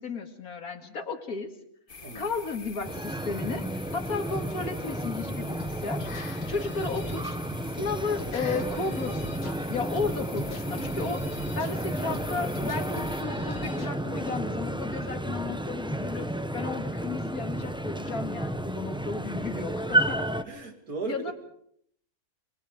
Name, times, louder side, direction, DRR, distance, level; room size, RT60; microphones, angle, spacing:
voice 1, 0.0-1.5 2.1-7.2 7.7-11.2 11.6-20.2 21.1-21.3, left 4 dB, 70° left, 5 dB, 2.7 m, -34 dB
sound 1, 1.9-13.2, left 4 dB, 35° left, 1.4 m, -45 dB
voice 2, 2.0-2.3 20.4-21.3, right 4 dB, 70° right, 5 dB, 3.1 m, -36 dB
sound 2, 2.8-20.4, right 1 dB, 5° right, 0.7 m, -32 dB
sound 3, 5.6-14.2, left 3 dB, 90° left, 2.5 m, -44 dB
29.5 x 21.0 x 5.1 m, 0.66 s
omnidirectional pair, 1.6 m